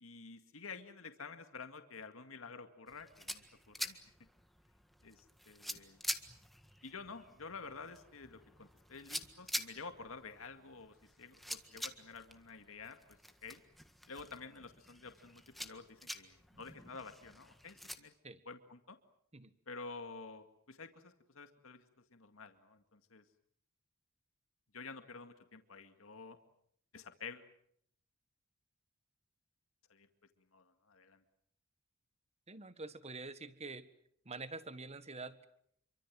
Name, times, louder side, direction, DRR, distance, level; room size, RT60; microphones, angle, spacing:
voice 1, 0.0-4.1 5.0-6.0 6.8-13.0 13.4-13.6 14.1-18.1 18.5-19.0 19.7-23.2 24.7-26.4 26.9-27.5 29.9-30.1 30.5-31.2, left 4 dB, 80° left, 7 dB, 2.1 m, -50 dB
sound 1, 2.9-18.0, equal, ahead, 1.7 m, -47 dB
voice 2, 32.5-33.9 34.3-35.5, right 3 dB, 30° right, 12 dB, 1.6 m, -46 dB
28.0 x 24.5 x 7.6 m, 0.70 s
head